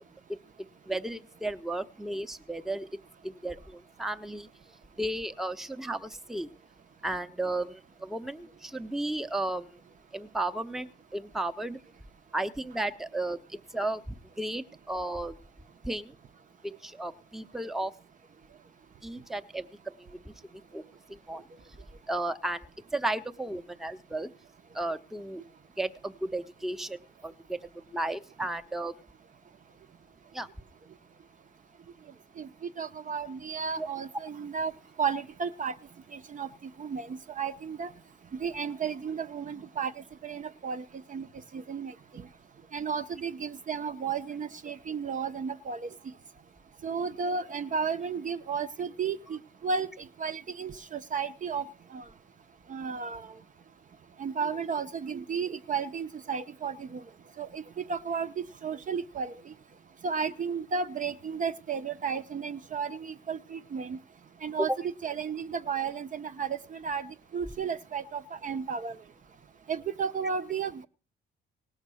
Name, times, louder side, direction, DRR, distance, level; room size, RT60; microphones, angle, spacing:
voice 1, 0.8-2.9 3.2-4.5 5.0-6.5 7.0-9.8 10.1-11.8 12.3-15.4 15.8-16.1 16.6-17.9 19.0-19.6 20.0-20.8 21.1-21.4 22.1-22.7 22.9-24.3 24.7-25.4 25.8-29.0 30.3-30.5 33.8-33.9 64.6-64.8, right 2 dB, ahead, 7 dB, 0.7 m, -34 dB
voice 2, 32.8-34.7 35.0-35.8 36.1-36.5 36.8-37.9 38.4-39.9 40.2-41.3 41.5-42.3 42.7-45.9 46.8-51.6 51.9-52.0 52.7-53.3 54.2-57.0 57.4-58.3 58.6-59.5 60.0-64.0 64.4-64.7 65.0-69.0 69.7-70.9, right 6 dB, 40° right, 10 dB, 0.6 m, -33 dB
18.0 x 6.5 x 6.2 m, 0.38 s
cardioid pair, 90°, 20 cm